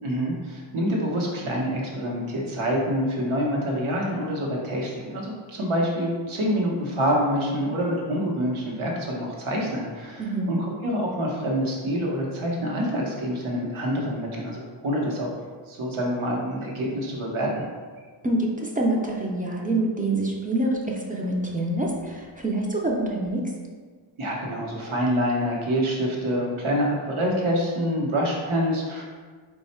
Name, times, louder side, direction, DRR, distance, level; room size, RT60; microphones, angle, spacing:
voice 1, 0.0-15.3 15.7-17.7 24.2-29.0, equal, 75° right, -2 dB, 1.0 m, -26 dB
voice 2, 10.2-10.6 18.2-23.4, right 1 dB, 20° right, -2 dB, 0.4 m, -26 dB
4.2 x 2.3 x 4.1 m, 1.5 s
wide cardioid pair, 155°, 49 cm